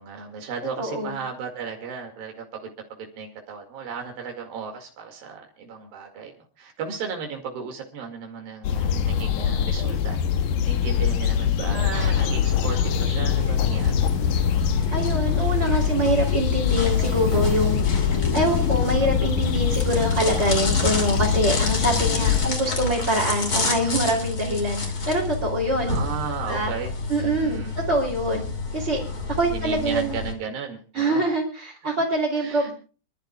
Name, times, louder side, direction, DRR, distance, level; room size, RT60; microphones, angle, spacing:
voice 1, 0.0-2.7 3.0-10.2 10.6-13.9 22.2-22.6 25.8-26.9 27.2-27.7 29.5-31.4 32.4-32.7, right 6 dB, 80° right, 2 dB, 3.9 m, -35 dB
voice 2, 0.8-1.2 11.1-11.2 14.9-17.8 18.3-25.9 26.5-26.7 27.1-27.6 27.9-28.4 28.7-29.0 29.3-30.2 30.9-32.7, right 1 dB, 20° right, -5 dB, 3.0 m, -24 dB
sound 1, 8.6-22.5, left 8 dB, 70° left, 2.4 m, -23 dB
sound 2, 11.9-30.3, left 3 dB, 25° left, 2.9 m, -29 dB
29.0 x 11.5 x 2.4 m, 0.37 s
omnidirectional pair, 4.1 m